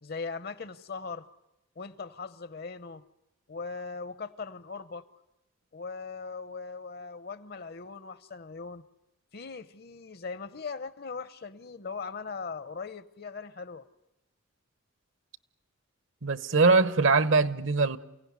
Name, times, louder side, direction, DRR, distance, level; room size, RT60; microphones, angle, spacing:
voice 1, 0.0-1.3 1.8-3.0 3.5-5.1 5.7-8.9 9.3-13.9, left 4 dB, 45° left, 0.8 m, -39 dB
voice 2, 16.2-18.0, right 3 dB, 65° right, 1.0 m, -22 dB
29.0 x 16.5 x 9.6 m
head